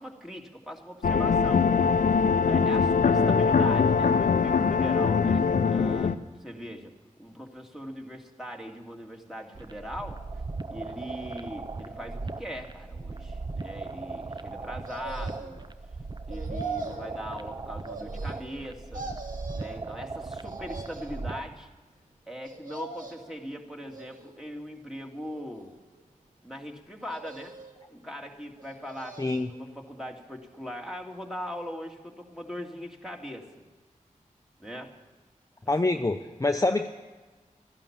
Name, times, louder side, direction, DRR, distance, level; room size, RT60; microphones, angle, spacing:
voice 1, 0.0-1.7 2.4-6.9 7.2-10.2 10.7-15.6 16.3-19.2 19.5-21.7 22.3-25.7 26.4-27.6 27.9-29.2 29.5-33.5 34.6-34.9, equal, 5° right, 2 dB, 2.3 m, -40 dB
sound 1, 1.0-6.1, left 5 dB, 75° left, 0.6 m, -22 dB
sound 2, 9.5-21.6, right 3 dB, 35° right, 0.7 m, -38 dB
sound 3, 14.8-15.7 16.3-17.1 17.8-18.6 18.9-19.8 20.4-21.2 22.4-23.4 23.9-24.6 25.2-26.0 27.0-27.8 28.6-29.5 29.9-30.0, right 4 dB, 75° right, 2.0 m, -42 dB
voice 2, 29.2-29.5 35.7-36.9, left 2 dB, 25° left, 5 dB, 0.7 m, -25 dB
13.5 x 11.5 x 7.3 m, 1.3 s
cardioid pair, 45°, 14 cm